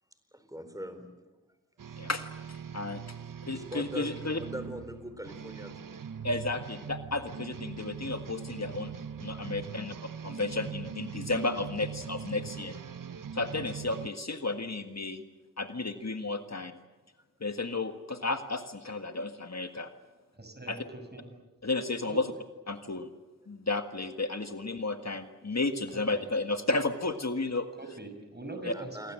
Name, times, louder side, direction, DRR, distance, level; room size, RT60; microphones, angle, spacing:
voice 1, 0.3-1.3 3.5-6.0 28.6-29.1, equal, 10° right, 9 dB, 4.2 m, -42 dB
sound 1, 1.8-14.1, right 7 dB, 85° right, 0.7 m, -41 dB
voice 2, 2.0-3.0 3.5-4.4 6.2-8.9 9.2-9.9 10.2-12.7 13.3-15.2 15.6-16.7 17.4-19.9 20.7-20.8 21.6-22.3 22.7-23.1 23.5-27.7 28.6-28.7, left 3 dB, 55° left, 7 dB, 1.7 m, -33 dB
voice 3, 20.4-21.3 22.1-22.2 25.9-26.2 27.8-29.1, right 2 dB, 30° right, 6 dB, 5.9 m, -43 dB
28.5 x 23.5 x 7.8 m, 1.2 s
wide cardioid pair, 65°, 31 cm